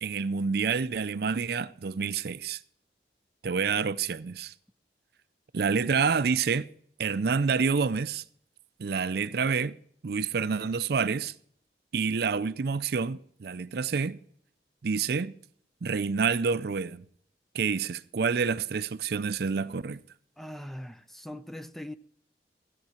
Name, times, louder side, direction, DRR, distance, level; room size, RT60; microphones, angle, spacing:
voice 1, 0.0-2.6 3.4-4.5 5.5-6.7 7.0-8.2 8.8-9.7 10.0-11.3 11.9-14.2 14.8-15.3 15.8-17.0 17.5-20.0, right 5 dB, 60° right, 0.4 m, -28 dB
voice 2, 20.4-21.9, left 1 dB, ahead, 0.4 m, -41 dB
13.5 x 8.4 x 5.7 m
head